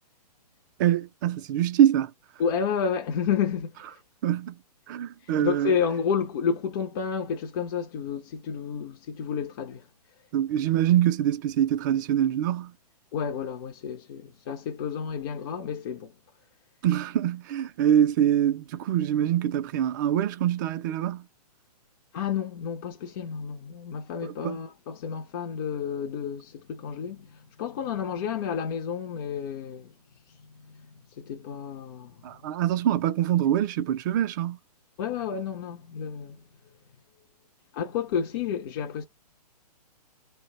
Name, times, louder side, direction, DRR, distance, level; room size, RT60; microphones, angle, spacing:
voice 1, 0.8-2.1 4.2-4.6 4.9-5.7 10.3-12.7 16.8-21.3 24.2-24.6 32.2-34.6, right 11 dB, 30° right, 0.4 m, -24 dB
voice 2, 2.4-4.0 5.2-9.9 13.1-16.1 22.1-29.9 30.3-32.2 35.0-36.4 37.7-39.1, left 7 dB, 35° left, 0.5 m, -31 dB
2.7 x 2.1 x 3.8 m
hypercardioid pair, 130°, 21 cm